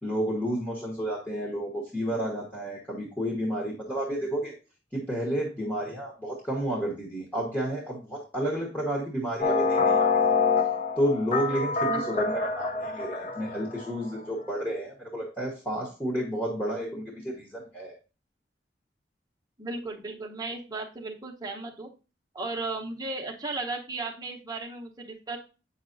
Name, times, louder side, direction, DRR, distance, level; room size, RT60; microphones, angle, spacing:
voice 1, 0.0-4.5 4.9-10.2 11.0-17.9, right 1 dB, 10° left, -3 dB, 1.1 m, -31 dB
sound 1, 9.4-13.9, left 5 dB, 40° left, 0.4 m, -26 dB
voice 2, 11.9-12.2 19.6-21.9 22.3-25.4, right 3 dB, 20° right, 1 dB, 0.8 m, -35 dB
7.9 x 5.6 x 2.6 m, 0.33 s
head